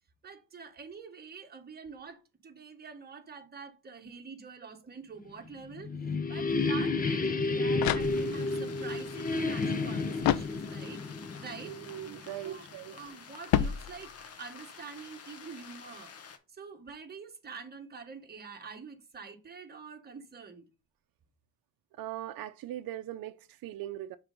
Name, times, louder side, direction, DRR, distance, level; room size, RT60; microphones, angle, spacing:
voice 1, 0.2-11.0 11.4-11.7 12.4-12.6 12.9-14.1 14.4-16.1 16.5-20.7, right 5 dB, 30° right, 1.1 m, -46 dB
sound 1, 5.5-12.2, left 3 dB, 25° left, 0.7 m, -31 dB
sound 2, 7.8-8.6 10.2-11.1 13.5-14.4, left 11 dB, 85° left, 0.5 m, -31 dB
sound 3, 8.0-16.4, left 6 dB, 45° left, 1.0 m, -50 dB
voice 2, 11.6-13.0 22.0-24.2, right 13 dB, 85° right, 0.5 m, -40 dB
5.9 x 3.7 x 5.1 m
cardioid pair, 130°, 34 cm